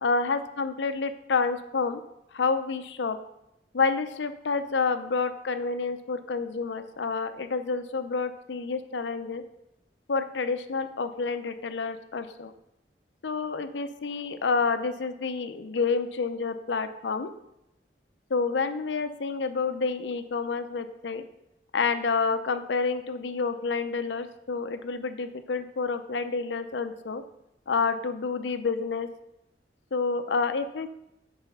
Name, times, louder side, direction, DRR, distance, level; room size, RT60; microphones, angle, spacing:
voice 1, 0.0-2.0 2.3-3.2 3.7-9.4 10.1-12.5 13.2-17.3 18.3-21.2 21.7-27.2 27.7-29.1 29.9-30.9, left 4 dB, 85° left, 10 dB, 0.6 m, -29 dB
8.1 x 4.9 x 5.5 m, 0.84 s
head